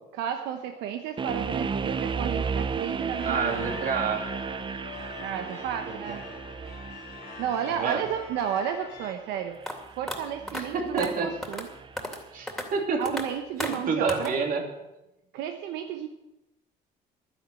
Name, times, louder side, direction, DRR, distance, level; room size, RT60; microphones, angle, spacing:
voice 1, 0.2-3.8 5.2-6.2 7.4-9.6 10.0-11.7 13.0-14.3 15.3-16.1, right 9 dB, 90° right, 6 dB, 1.0 m, -32 dB
sound 1, 1.2-12.2, right 5 dB, 30° right, 0.6 m, -35 dB
sound 2, 3.2-9.1, left 7 dB, 90° left, 3.9 m, -44 dB
voice 2, 3.2-4.2 5.8-6.2 7.6-8.0 10.5-11.3 12.3-13.0 13.6-14.6, right 5 dB, 55° right, 3 dB, 2.9 m, -28 dB
sound 3, 9.7-9.8 10.1-10.2 10.5-10.6 11.0-11.1 11.4-11.7 12.0-12.2 12.5-12.7 13.1-13.2 13.6-13.8 14.1-14.3, left 1 dB, ahead, 2.6 m, -33 dB
11.5 x 10.5 x 7.7 m, 0.92 s
cardioid pair, 110°, 17 cm